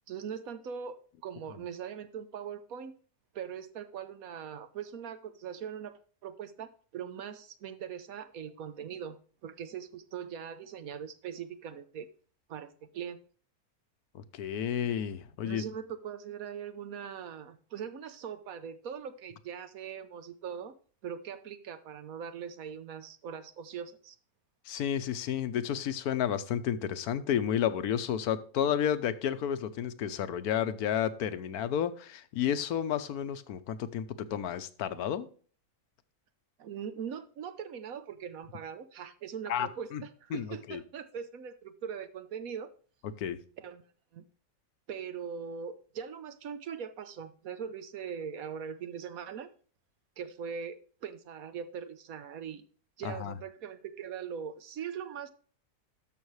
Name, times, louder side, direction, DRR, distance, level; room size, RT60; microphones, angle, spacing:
voice 1, 0.1-2.9 3.3-12.1 12.5-13.2 15.4-20.7 21.0-24.2 36.6-42.7 43.6-43.8 44.1-44.2 44.9-49.5 50.2-52.6 53.0-55.3, right 7 dB, 70° right, 12 dB, 1.2 m, -41 dB
voice 2, 14.1-15.6 24.7-35.3 39.5-40.0 40.3-40.8 43.2-43.4 53.0-53.4, left 9 dB, 75° left, 13 dB, 1.2 m, -31 dB
12.5 x 6.0 x 3.2 m, 0.43 s
omnidirectional pair, 1.6 m